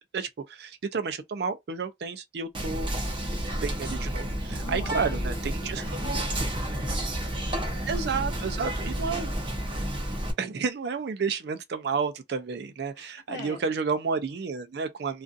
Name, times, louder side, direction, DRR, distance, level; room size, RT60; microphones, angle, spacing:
voice 1, 0.1-2.9 3.6-6.2 7.9-9.3 10.4-15.2, right 5 dB, 60° right, 0.4 m, -31 dB
Whispering, 2.6-10.3, right 1 dB, 25° right, 0.7 m, -30 dB
voice 2, 4.5-8.9 12.9-13.6, left 2 dB, 55° left, 0.8 m, -45 dB
2.5 x 2.3 x 2.4 m
head